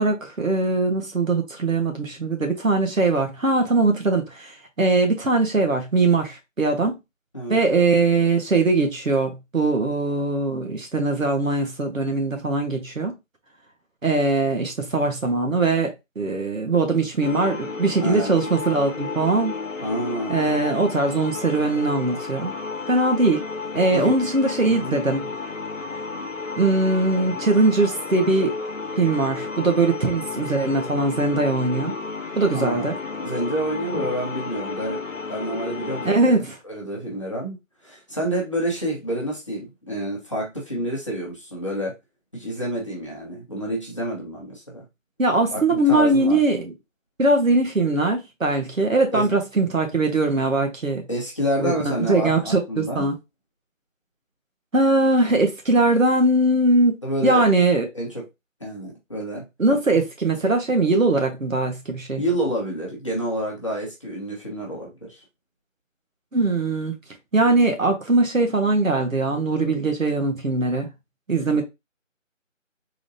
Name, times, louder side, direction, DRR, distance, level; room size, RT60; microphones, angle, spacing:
voice 1, 0.0-4.5 4.8-7.0 7.5-13.2 14.0-19.5 20.3-22.5 22.9-23.4 23.7-25.3 26.6-28.5 29.0-31.9 32.4-33.0 33.9-34.0 36.0-36.5 45.2-46.7 47.2-51.0 51.6-51.7 52.1-53.1 54.7-57.8 59.6-62.2 66.3-66.9 67.3-70.9 71.3-71.6, right 2 dB, 80° right, 1.6 m, -21 dB
sound 1, 17.2-36.1, left 4 dB, 70° left, 0.9 m, -32 dB
voice 2, 19.8-20.5 23.9-24.2 24.7-25.0 32.5-32.9 33.2-35.0 35.3-36.4 36.6-37.6 37.8-41.9 42.3-44.8 45.5-46.4 49.1-49.3 51.1-53.0 57.0-57.5 57.9-58.2 58.6-59.4 62.2-65.2, equal, 25° left, 1.0 m, -28 dB
3.8 x 3.5 x 2.7 m
figure-of-eight pair, 165°, 39 cm